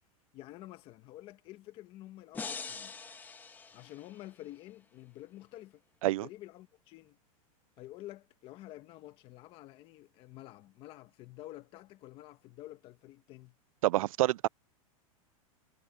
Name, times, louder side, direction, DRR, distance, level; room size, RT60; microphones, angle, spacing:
voice 1, 0.3-2.9 3.7-5.8 6.2-7.2 7.8-13.5, left 15 dB, 30° left, 1.3 m, -49 dB
sound 1, 2.3-4.5, left 5 dB, 10° left, 1.3 m, -43 dB
voice 2, 13.8-14.5, right 16 dB, 70° right, 0.4 m, -27 dB
supercardioid pair, 160°, 18 cm